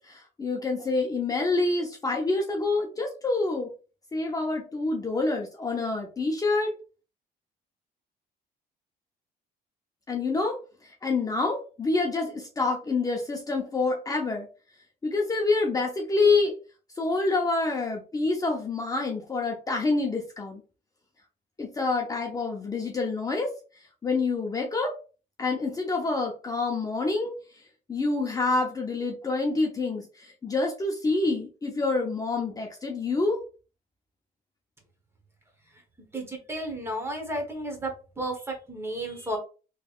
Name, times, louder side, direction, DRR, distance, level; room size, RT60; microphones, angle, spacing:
voice 1, 0.0-3.7 4.1-6.7 10.1-10.5 10.8-14.5 15.0-16.5 17.0-20.6 21.6-23.5 24.0-24.9 25.4-27.6 27.9-33.4, left 3 dB, 20° left, 0 dB, 0.7 m, -27 dB
voice 2, 36.1-39.4, right 1 dB, 15° right, 2 dB, 1.1 m, -33 dB
3.3 x 3.1 x 2.4 m, 0.35 s
cardioid pair, 110°, 17 cm